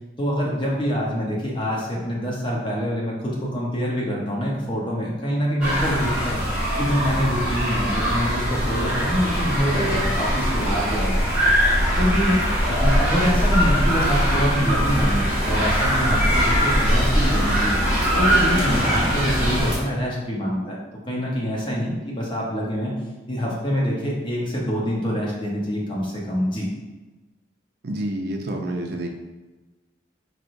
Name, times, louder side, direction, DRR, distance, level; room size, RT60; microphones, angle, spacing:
voice 1, 0.2-6.4 6.8-11.1 11.9-12.4 12.7-17.8 18.2-20.7 21.1-22.9 23.3-26.7, equal, 25° left, -4 dB, 0.9 m, -25 dB
sound 1, 5.6-19.8, equal, 5° right, 1.3 m, -21 dB
voice 2, 27.8-29.1, right 1 dB, 55° right, 2 dB, 0.5 m, -28 dB
4.5 x 3.2 x 2.6 m, 1.2 s
head